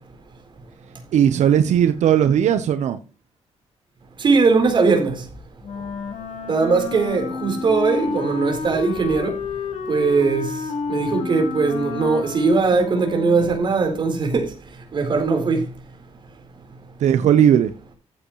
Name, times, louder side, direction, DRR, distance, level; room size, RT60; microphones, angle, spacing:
voice 1, 1.1-3.0 17.0-17.7, right 9 dB, 85° right, 0.9 m, -17 dB
voice 2, 4.2-5.2 6.5-9.4 9.9-10.6 10.9-14.5 14.9-15.6, right 4 dB, 45° right, 4.0 m, -20 dB
Wind instrument woodwind instrument, 5.6-13.9, left 5 dB, 75° left, 3.3 m, -30 dB
14.5 x 8.1 x 3.1 m
wide cardioid pair, 155°, 12 cm